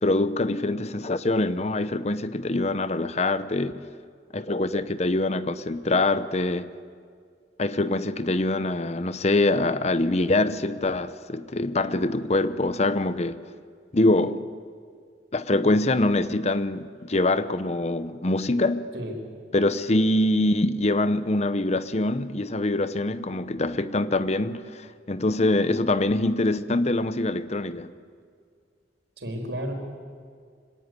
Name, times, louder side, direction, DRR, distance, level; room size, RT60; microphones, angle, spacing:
voice 1, 0.0-3.8 4.3-6.7 7.6-13.4 13.9-14.5 15.3-18.9 19.5-27.9, left 2 dB, 35° left, 0.8 m, -24 dB
voice 2, 29.2-29.7, equal, 75° right, 4.6 m, -32 dB
25.0 x 17.5 x 9.6 m
head